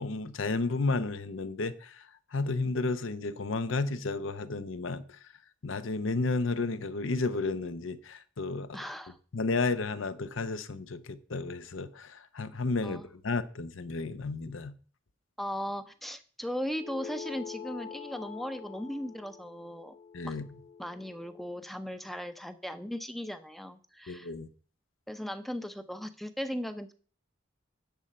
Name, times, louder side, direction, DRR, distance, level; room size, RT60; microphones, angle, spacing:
voice 1, 0.0-2.0 2.3-5.2 5.6-8.8 9.3-14.7 20.1-20.4 24.1-24.5, left 3 dB, 70° left, 0.8 m, -32 dB
voice 2, 8.7-9.2 12.8-13.1 15.4-20.0 20.2-20.4 20.8-24.3 25.1-26.9, equal, ahead, 0.6 m, -37 dB
sound 1, 16.7-21.6, left 7 dB, 45° left, 1.1 m, -45 dB
10.5 x 4.4 x 7.5 m
head